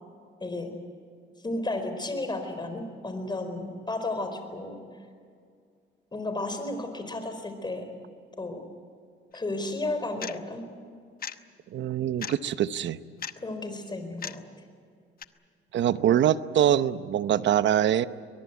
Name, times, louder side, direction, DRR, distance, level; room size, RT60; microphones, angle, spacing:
voice 1, 0.4-0.7 1.4-4.8 6.1-7.9 8.4-8.7 9.3-10.7 13.4-14.5, left 2 dB, 20° left, 7 dB, 4.6 m, -33 dB
sound 1, 9.3-9.4 10.2-10.4 11.2-11.3 12.2-12.4 13.2-13.3 14.2-14.3 15.2-15.3, left 8 dB, 50° left, 1.0 m, -35 dB
voice 2, 11.7-13.0 15.7-18.1, right 10 dB, 65° right, 14 dB, 0.9 m, -24 dB
23.0 x 21.5 x 8.3 m, 2.2 s
cardioid pair, 90°, 20 cm